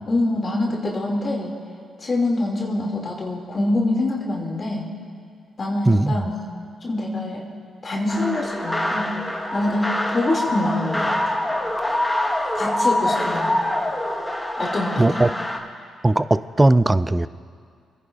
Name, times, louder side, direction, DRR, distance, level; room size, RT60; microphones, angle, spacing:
voice 1, 0.1-1.5 2.0-4.9 5.6-6.4 6.8-7.4 7.8-9.2 9.5-11.3 12.5-13.6 14.6-15.2, left 2 dB, 45° left, -1 dB, 2.3 m, -25 dB
voice 2, 5.9-6.2 15.0-15.3 16.0-17.3, right 2 dB, 20° right, 15 dB, 0.4 m, -18 dB
sound 1, 8.1-15.6, left 1 dB, 10° left, 1.3 m, -25 dB
29.5 x 10.0 x 2.5 m, 2.2 s
supercardioid pair, 55°, 0 cm